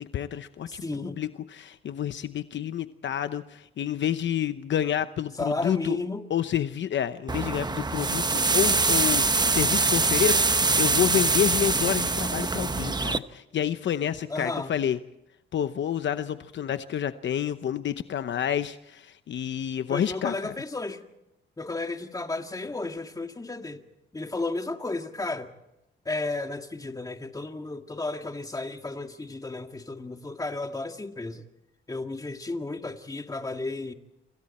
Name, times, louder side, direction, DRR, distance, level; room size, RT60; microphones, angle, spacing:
voice 1, 0.0-6.0 6.3-15.0 15.5-20.5, left 10 dB, 60° left, 0.9 m, -29 dB
voice 2, 0.7-1.2 5.4-6.3 14.3-14.7 19.9-21.1 21.6-23.8 24.1-25.5 26.1-31.4 31.9-33.9, left 2 dB, 15° left, 2.0 m, -33 dB
sound 1, 7.3-13.2, right 3 dB, 20° right, 1.0 m, -24 dB
29.0 x 26.5 x 4.3 m
cardioid pair, 105°, 21 cm